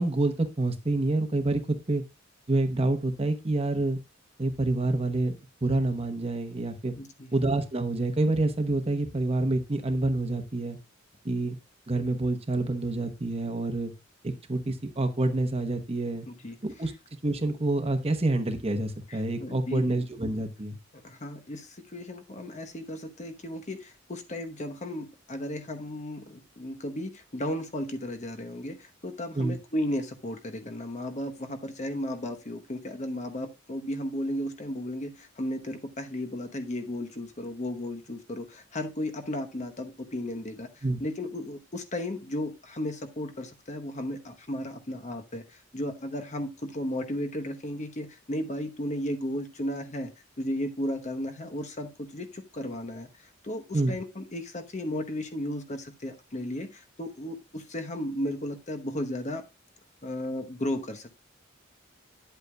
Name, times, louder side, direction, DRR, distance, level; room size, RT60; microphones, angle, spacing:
voice 1, 0.0-2.0 2.5-4.0 4.4-6.9 7.3-10.8 11.2-11.6 11.9-13.9 14.2-16.3 16.6-16.9 17.2-20.8 29.3-29.6 40.8-41.0 53.7-54.0, right 2 dB, 30° right, 6 dB, 1.0 m, -27 dB
voice 2, 6.9-7.3 16.3-16.6 19.1-19.8 21.0-40.7 41.0-50.1 50.4-53.1 53.4-59.4 60.0-61.1, left 1 dB, 35° left, 6 dB, 0.9 m, -34 dB
9.7 x 8.0 x 2.2 m, 0.25 s
head